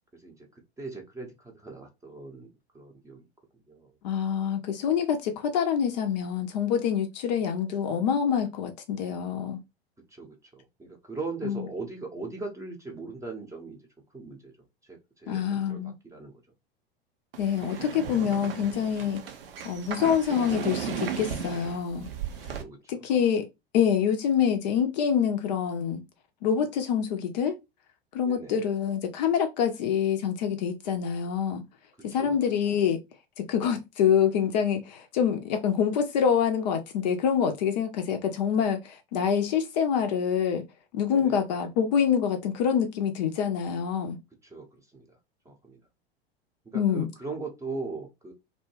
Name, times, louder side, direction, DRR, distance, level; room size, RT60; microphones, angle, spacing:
voice 1, 0.1-0.5 0.8-3.3 3.7-3.9 7.3-7.5 10.1-13.8 14.1-14.5 14.8-16.3 22.5-23.1 28.2-28.7 32.1-32.4 41.1-41.4 44.4-45.2 45.4-45.8 46.6-48.3, right 3 dB, 10° right, 0.7 m, -40 dB
voice 2, 4.0-9.6 11.4-11.6 15.3-15.9 17.4-19.2 19.6-22.1 22.9-23.5 23.7-26.0 26.4-27.6 28.1-31.6 32.0-33.0 33.5-40.6 40.9-44.2 46.7-47.1, left 8 dB, 45° left, 0.5 m, -26 dB
sound 1, 17.3-22.6, right 7 dB, 60° right, 0.6 m, -36 dB
2.7 x 2.1 x 3.0 m
figure-of-eight pair, 90°, 32 cm